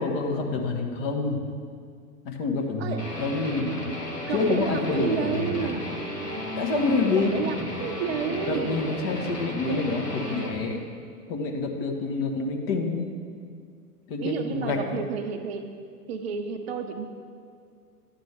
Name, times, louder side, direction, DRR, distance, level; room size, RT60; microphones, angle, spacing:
voice 1, 0.0-1.4 2.2-3.7 4.3-5.8 6.6-7.3 8.4-10.9 11.3-13.1 14.1-15.0, left 3 dB, 40° left, 3 dB, 1.1 m, -27 dB
Guitar, 3.0-10.6, left 1 dB, 85° left, 1.4 m, -34 dB
voice 2, 4.2-5.9 7.1-8.8 14.2-15.7 16.1-17.1, right 7 dB, 45° right, 7 dB, 0.6 m, -30 dB
11.0 x 8.1 x 3.4 m, 2.2 s
figure-of-eight pair, 100°, 46 cm